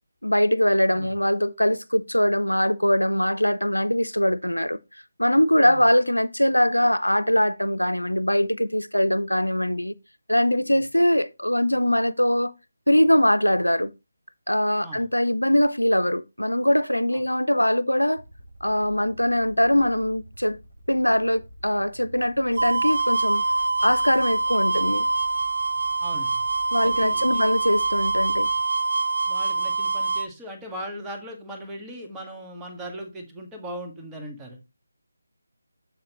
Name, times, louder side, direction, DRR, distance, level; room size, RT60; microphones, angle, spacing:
voice 1, 0.2-4.8 5.2-9.9 10.3-12.5 12.9-13.9 14.5-18.2 18.6-20.6 20.9-23.4 23.8-25.1 26.7-28.5, left 1 dB, 90° left, 0.6 m, -22 dB
sound 1, 18.1-28.7, equal, 80° right, 4.8 m, -48 dB
sound 2, 22.6-30.3, right 3 dB, 60° right, 1.0 m, -24 dB
voice 2, 26.0-26.4 26.8-27.4 29.3-34.6, right 1 dB, 10° right, 1.7 m, -38 dB
7.5 x 7.3 x 3.0 m
figure-of-eight pair, 155°, 0 cm